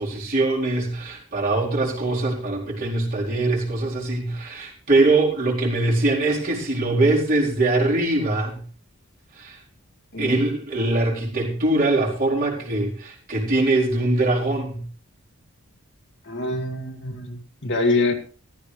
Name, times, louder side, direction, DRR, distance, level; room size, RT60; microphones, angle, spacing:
voice 1, 0.0-8.6 9.4-9.6 10.2-14.8, right 2 dB, 40° right, -4 dB, 4.4 m, -22 dB
voice 2, 16.2-18.1, left 2 dB, 50° left, 2 dB, 2.2 m, -25 dB
14.5 x 14.5 x 3.3 m, 0.41 s
head